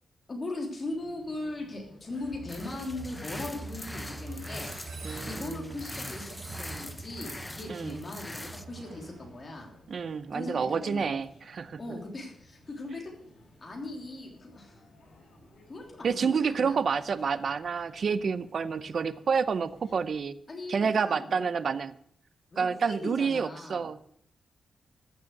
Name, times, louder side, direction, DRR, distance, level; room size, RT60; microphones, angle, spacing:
voice 1, 0.3-4.7 5.2-9.7 10.3-10.5 10.8-11.2 11.8-13.1 13.6-14.8 15.7-16.8 20.5-21.4 22.5-23.9, left 2 dB, 30° left, 0 dB, 3.3 m, -39 dB
sound 1, 0.8-20.2, left 1 dB, 65° left, 7.0 m, -58 dB
Train, 2.1-10.1, right 3 dB, 85° right, 3.3 m, -45 dB
sound 2, 2.5-8.6, left 1 dB, 10° left, 0.6 m, -42 dB
voice 2, 5.0-5.8 7.7-8.0 9.9-11.8 16.0-20.3 20.7-22.0 22.6-24.0, right 6 dB, 50° right, 14 dB, 0.6 m, -29 dB
15.0 x 6.7 x 6.6 m, 0.67 s
wide cardioid pair, 170°, 0 cm